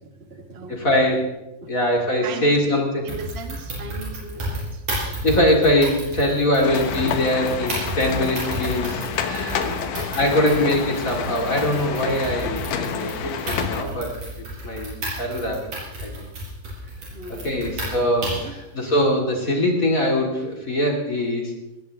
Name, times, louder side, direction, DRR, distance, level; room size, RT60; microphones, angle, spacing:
voice 1, 0.0-1.2 1.6-1.7 2.2-4.8 7.2-7.3 9.3-10.0 17.1-17.8 18.3-18.5, right 3 dB, 45° right, 5 dB, 0.8 m, -38 dB
voice 2, 0.7-1.4 1.7-3.0 5.2-9.7 10.1-15.7 16.0-16.1 17.3-21.5, left 1 dB, 25° left, 1 dB, 2.7 m, -22 dB
sound 1, 3.1-18.6, right 1 dB, 65° right, 8.3 m, -32 dB
sound 2, 6.6-13.8, left 7 dB, 75° left, 2.7 m, -29 dB
20.0 x 17.5 x 3.6 m, 0.94 s
omnidirectional pair, 3.8 m